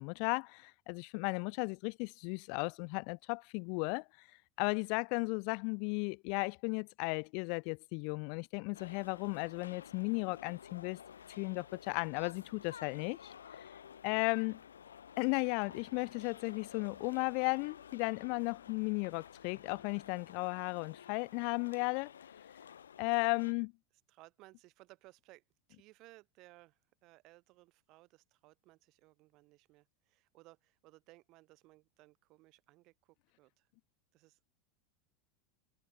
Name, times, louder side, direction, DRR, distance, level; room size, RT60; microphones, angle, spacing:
voice 1, 0.0-4.0 4.6-11.0 11.4-13.3 14.0-14.6 15.2-22.1 23.0-23.7, left 40 dB or more, 50° left, 0.6 m, -35 dB
sound 1, 8.7-23.5, left 8 dB, 75° left, 3.1 m, -53 dB
voice 2, 14.1-14.6 24.1-25.4 25.7-33.7 34.1-34.4, right 20 dB, 45° right, 3.9 m, -61 dB
figure-of-eight pair, 85°, 0 cm